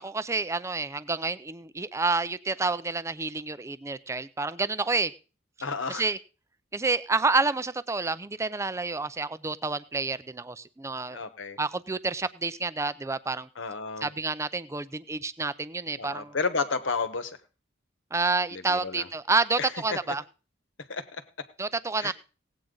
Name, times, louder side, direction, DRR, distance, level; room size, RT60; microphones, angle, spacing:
voice 1, 0.0-5.1 5.9-6.2 6.7-11.2 11.6-13.5 14.0-16.4 18.1-20.2 21.6-22.1, right 3 dB, 15° right, 14 dB, 0.5 m, -29 dB
voice 2, 5.6-6.1 11.1-11.6 13.6-14.1 16.0-17.4 18.5-19.1 19.6-19.7 20.9-21.2 22.0-22.1, left 4 dB, 75° left, 10 dB, 1.2 m, -32 dB
17.5 x 8.7 x 3.9 m, 0.35 s
head